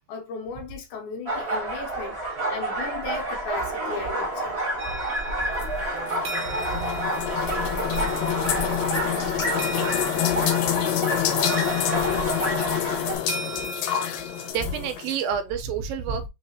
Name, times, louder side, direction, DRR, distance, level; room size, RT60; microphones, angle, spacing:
voice 1, 0.1-4.6, left 5 dB, 70° left, 2.0 m, -36 dB
sound 1, 1.3-13.1, right 1 dB, 45° right, 0.8 m, -29 dB
sound 2, 4.8-14.5, right 2 dB, 70° right, 1.5 m, -39 dB
sound 3, 5.6-15.2, left 11 dB, 90° left, 2.4 m, -27 dB
voice 2, 14.5-16.3, right 6 dB, 85° right, 2.5 m, -29 dB
5.6 x 3.2 x 2.8 m
omnidirectional pair, 3.9 m